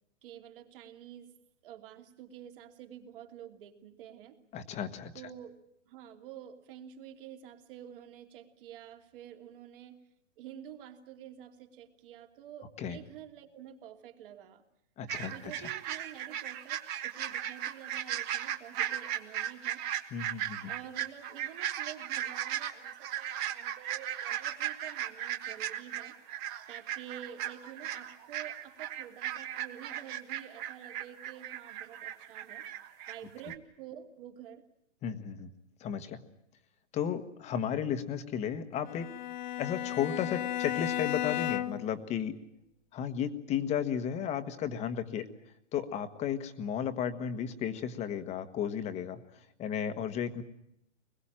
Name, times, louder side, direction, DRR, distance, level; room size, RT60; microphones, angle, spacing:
voice 1, 0.2-1.3 1.6-4.4 5.1-5.6 5.9-10.0 10.4-14.6 15.3-19.8 20.7-26.2 26.7-32.7 33.1-34.6, right 10 dB, 45° right, 4 dB, 2.9 m, -49 dB
voice 2, 4.5-5.1 12.8-13.0 15.0-15.3 15.6-15.7 20.1-20.7 35.0-35.5 35.8-36.2 36.9-39.1 39.6-42.4 42.9-45.3 45.7-49.2 49.6-50.4, left 8 dB, 20° left, 10 dB, 1.3 m, -34 dB
sound 1, 15.1-33.2 33.4-33.5, right 11 dB, 25° right, 1.4 m, -37 dB
Bowed string instrument, 38.8-42.0, left 12 dB, 35° left, 1.0 m, -34 dB
23.5 x 21.5 x 8.9 m, 0.76 s
hypercardioid pair, 145°, 38 cm